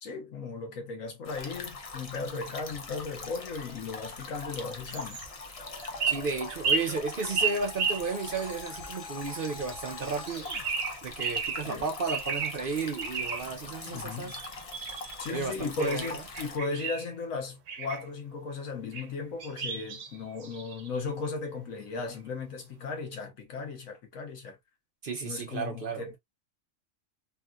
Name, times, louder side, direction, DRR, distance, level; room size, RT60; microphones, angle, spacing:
voice 1, 0.0-5.2 11.6-11.9 13.9-14.4 15.2-24.6 25.2-26.2, left 4 dB, 85° left, 1.4 m, -36 dB
sound 1, 1.2-16.6, left 3 dB, 45° left, 0.5 m, -42 dB
sound 2, 4.9-5.3 5.8-8.5 9.3-9.8 10.0-11.7 12.1-12.6 13.0-13.5 14.3-15.3 15.8-17.1 17.7-18.0 18.9-19.1 19.4-21.0, right 5 dB, 75° right, 1.1 m, -33 dB
sound 3, 5.6-10.7, left 5 dB, 65° left, 1.1 m, -47 dB
voice 2, 6.1-10.5 11.0-14.4 15.3-16.2 25.0-26.0, right 4 dB, 50° right, 0.7 m, -33 dB
3.5 x 2.3 x 2.2 m
omnidirectional pair, 1.4 m